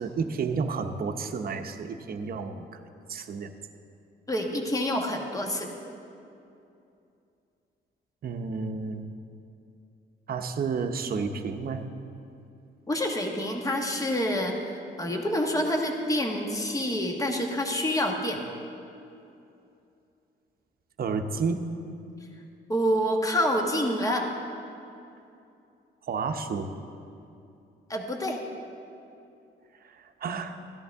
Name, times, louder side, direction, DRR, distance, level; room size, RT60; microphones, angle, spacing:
voice 1, 0.0-2.8 3.1-3.5 8.2-9.0 10.3-11.9 21.0-21.7 26.1-26.7 29.9-30.6, right 5 dB, 50° right, 6 dB, 0.8 m, -31 dB
voice 2, 4.3-5.7 12.9-14.5 15.0-18.4 22.7-24.3 27.9-28.4, equal, 15° left, 2 dB, 1.3 m, -27 dB
14.0 x 11.0 x 3.5 m, 2.6 s
cardioid pair, 90°, 20 cm